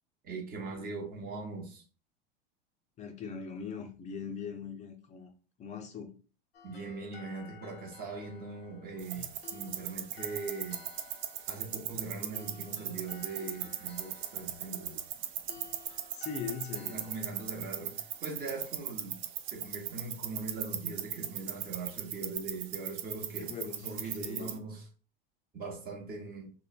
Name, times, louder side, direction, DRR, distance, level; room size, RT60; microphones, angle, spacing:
voice 1, 0.2-1.8 6.6-10.8 11.5-15.0 16.9-24.9 25.5-26.5, right 3 dB, 30° right, 0.9 m, -41 dB
voice 2, 3.0-5.3 5.6-6.1 9.1-9.3 16.1-17.1 23.4-24.6, left 6 dB, 25° left, 0.4 m, -41 dB
sound 1, 6.5-19.8, left 8 dB, 90° left, 0.5 m, -55 dB
sound 2, 9.0-24.6, right 11 dB, 50° right, 0.4 m, -39 dB
3.0 x 2.0 x 2.3 m
hypercardioid pair, 95°, 29 cm